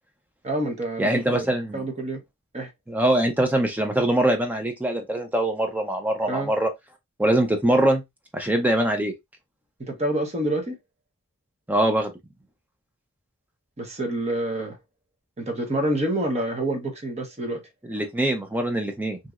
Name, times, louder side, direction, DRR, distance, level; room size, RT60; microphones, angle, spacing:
voice 1, 0.4-1.5 1.7-2.2 2.5-2.7 6.3-6.5 9.8-10.8 13.8-14.8 15.4-17.6, right 1 dB, 30° right, 0.9 m, -27 dB
voice 2, 1.0-1.8 2.9-6.7 7.2-8.0 8.3-9.1 11.7-12.1 17.9-19.2, right 1 dB, 5° right, 0.4 m, -23 dB
3.0 x 2.7 x 2.4 m
head